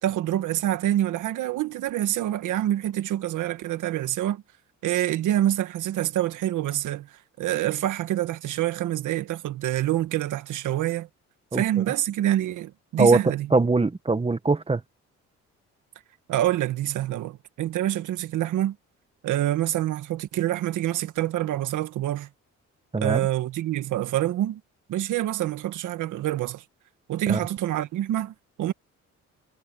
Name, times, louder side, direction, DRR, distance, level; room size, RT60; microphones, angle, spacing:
voice 1, 0.0-4.4 4.8-11.1 11.5-13.5 16.3-18.7 19.2-22.3 23.0-24.6 24.9-26.6 27.1-28.7, right 13 dB, 80° right, 1.7 m, -26 dB
voice 2, 13.5-14.8 22.9-23.2 27.3-27.4, right 3 dB, 20° right, 1.5 m, -21 dB
cardioid pair, 90°, 30 cm